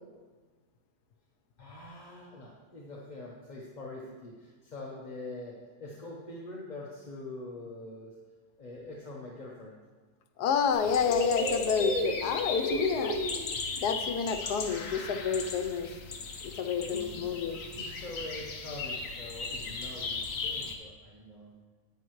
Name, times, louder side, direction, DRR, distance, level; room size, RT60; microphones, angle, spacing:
voice 1, 1.6-8.2 8.6-9.7 16.7-17.3 17.7-21.5, left 2 dB, 35° left, -3 dB, 0.9 m, -44 dB
voice 2, 10.4-13.2 13.8-15.9 16.4-17.6, left 6 dB, 80° left, 7 dB, 1.2 m, -29 dB
sound 1, 10.7-20.7, left 2 dB, 60° left, 1.3 m, -35 dB
10.5 x 9.3 x 3.1 m, 1.4 s
omnidirectional pair, 1.7 m